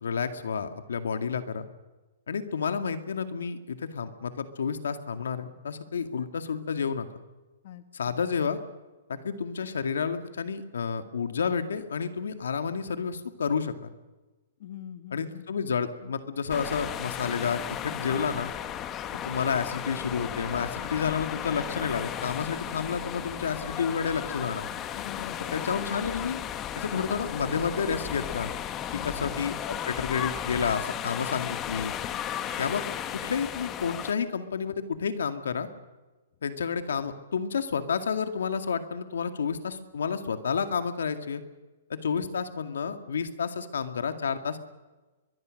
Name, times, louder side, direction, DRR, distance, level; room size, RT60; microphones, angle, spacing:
voice 1, 0.0-1.7 2.3-7.1 7.9-8.6 9.1-13.7 15.1-18.5 19.1-24.7 25.5-26.4 26.7-28.5 28.9-31.9 32.6-32.8 33.1-35.7 36.4-41.4 41.9-44.7, left 6 dB, 90° left, 8 dB, 2.1 m, -30 dB
voice 2, 7.6-8.2 14.6-15.5 24.9-25.7 28.9-29.5, left 10 dB, 55° left, 9 dB, 1.5 m, -43 dB
sound 1, 16.5-34.1, left 10 dB, 20° left, 1.3 m, -35 dB
24.0 x 21.0 x 6.5 m, 1.2 s
hypercardioid pair, 150°, 0 cm